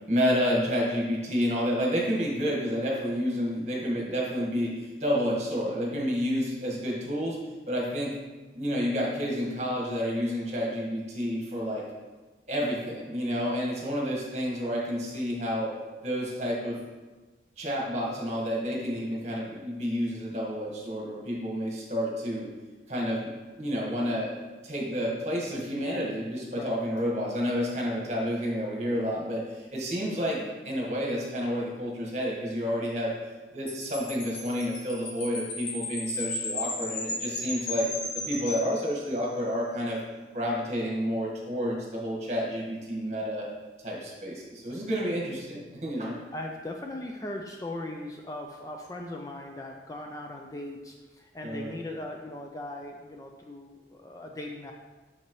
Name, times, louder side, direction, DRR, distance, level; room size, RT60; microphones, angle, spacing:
voice 1, 0.1-4.7 5.0-7.4 7.7-8.2 8.5-11.8 12.5-15.7 16.0-16.8 17.6-22.5 22.9-24.3 24.6-33.1 33.5-37.9 38.3-40.0 40.3-43.5 43.8-46.1 51.4-51.8, equal, 40° right, -3 dB, 1.5 m, -30 dB
Wind chime, 33.7-39.4, left 2 dB, 75° left, 1.5 m, -35 dB
voice 2, 46.3-54.7, left 1 dB, 20° left, 1 dB, 0.4 m, -39 dB
6.6 x 5.8 x 3.1 m, 1.2 s
head